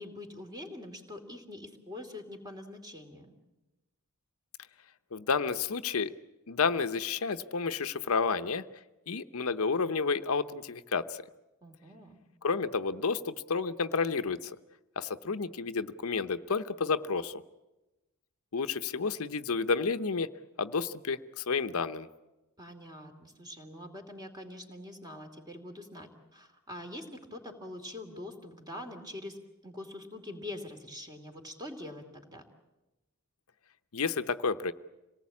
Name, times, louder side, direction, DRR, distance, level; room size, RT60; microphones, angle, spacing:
voice 1, 0.0-3.3 11.6-12.2 22.6-29.4 29.6-32.4, left 1 dB, 20° right, 5 dB, 2.6 m, -44 dB
voice 2, 5.1-6.1 6.5-8.6 9.1-11.1 12.4-14.5 15.0-17.3 18.5-20.3 20.6-22.1 33.9-34.7, left 5 dB, 75° left, 10 dB, 0.8 m, -30 dB
26.5 x 19.0 x 8.5 m, 1.0 s
head